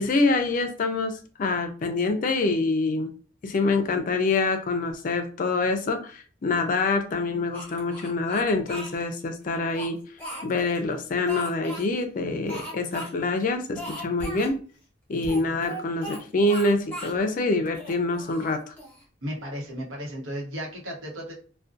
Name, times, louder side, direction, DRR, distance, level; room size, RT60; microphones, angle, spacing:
voice 1, 0.0-3.1 3.4-10.0 10.4-14.6 15.1-18.7, left 3 dB, 45° left, 7 dB, 0.4 m, -26 dB
Speech, 7.5-8.9 9.5-10.8 11.3-11.9 12.5-13.1 13.4-13.5 13.7-14.5 15.2-16.2 16.5-17.2 17.7-19.0, right 1 dB, 10° left, 0.8 m, -38 dB
voice 2, 19.2-21.3, equal, 85° right, -2 dB, 0.9 m, -34 dB
2.5 x 2.1 x 2.4 m, 0.40 s
head